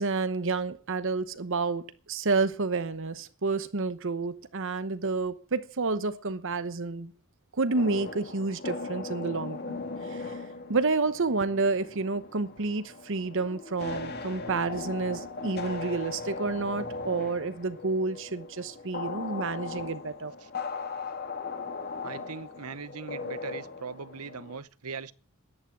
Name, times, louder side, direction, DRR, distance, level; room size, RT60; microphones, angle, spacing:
voice 1, 0.0-7.1 7.5-9.8 10.0-10.4 10.7-20.3, right 3 dB, 60° right, 1.0 m, -30 dB
sound 1, 7.7-24.6, left 3 dB, 45° left, 2.0 m, -38 dB
voice 2, 22.0-25.1, right 5 dB, 85° right, 0.9 m, -40 dB
11.0 x 10.5 x 9.7 m
head